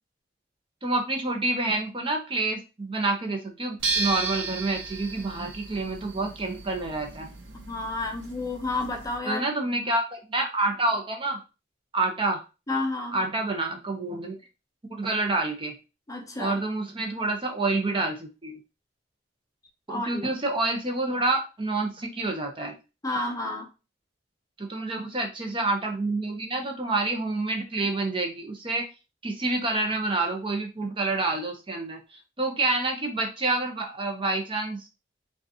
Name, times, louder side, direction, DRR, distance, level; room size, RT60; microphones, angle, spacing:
voice 1, 0.8-7.3 9.3-11.4 11.9-12.4 13.1-14.3 14.9-15.7 16.4-18.6 19.9-22.7 24.6-28.9 29.2-34.8, right 2 dB, 30° right, 2 dB, 0.7 m, -28 dB
sound 1, 3.8-9.2, right 3 dB, 85° right, 0.9 m, -34 dB
voice 2, 7.5-9.5 12.7-13.3 16.1-16.6 19.9-20.2 23.0-23.7, left 2 dB, 20° left, 3 dB, 0.6 m, -31 dB
4.9 x 2.4 x 2.8 m, 0.29 s
head